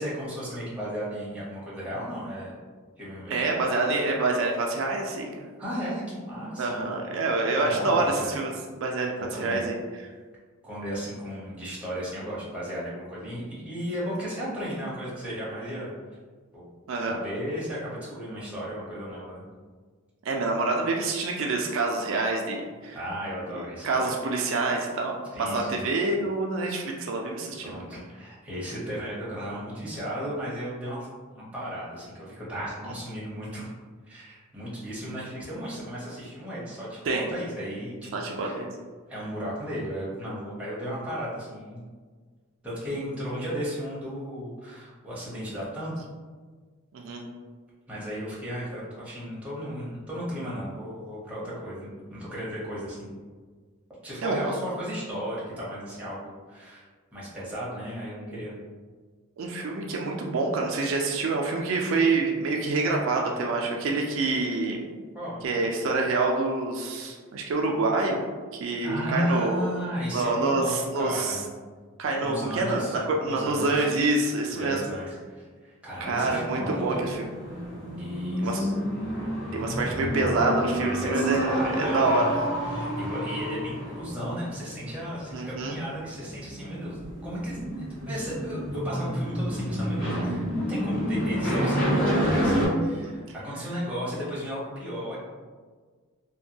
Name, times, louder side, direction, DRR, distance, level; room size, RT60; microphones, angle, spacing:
voice 1, 0.0-2.5 3.0-3.4 5.6-6.8 7.6-8.3 9.2-9.7 10.6-15.9 16.5-16.7 17.1-19.4 22.9-24.1 25.3-25.9 27.6-31.1 31.3-33.7 34.1-38.6 39.1-41.8 42.6-46.0 47.9-53.2 54.0-56.8 57.1-58.6 65.1-65.4 68.8-71.5 72.2-72.9 73.2-73.8 74.5-77.0 77.9-78.7 81.0-82.3 82.7-95.2, equal, 5° right, -8 dB, 0.6 m, -35 dB
voice 2, 3.3-5.5 6.6-8.5 8.8-9.8 16.9-17.2 20.3-23.0 23.5-27.9 37.0-37.3 38.1-38.7 46.9-47.2 54.2-54.5 59.4-64.9 65.4-68.2 68.5-69.8 70.1-71.4 72.0-74.8 76.0-77.3 78.4-78.6 79.5-82.4 85.3-85.8 93.0-93.1, right 3 dB, 65° right, 0 dB, 0.3 m, -27 dB
sound 1, 76.2-92.7, equal, 40° left, 1.2 m, -29 dB
2.6 x 2.2 x 2.7 m, 1.5 s
head